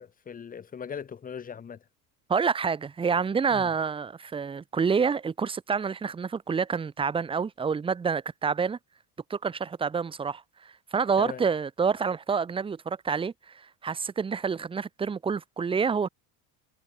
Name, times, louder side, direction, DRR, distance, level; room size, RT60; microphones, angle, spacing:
voice 1, 0.0-1.8 3.5-3.7 11.2-11.4, left 7 dB, 25° left, 0.8 m, -39 dB
voice 2, 2.3-8.8 9.3-10.4 10.9-13.3 13.8-16.1, right 5 dB, 15° right, 0.5 m, -27 dB
cardioid pair, 120°, 37 cm